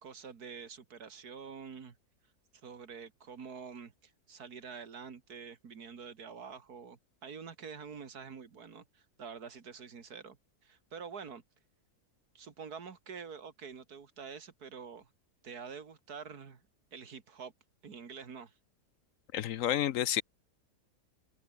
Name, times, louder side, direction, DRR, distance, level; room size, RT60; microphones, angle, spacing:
voice 1, 0.0-2.0 2.6-11.4 12.3-15.1 15.4-16.6 16.9-17.5 17.8-18.5, right 6 dB, 85° right, 2.5 m, -47 dB
voice 2, 19.3-20.2, left 11 dB, 65° left, 1.0 m, -30 dB
omnidirectional pair, 1.6 m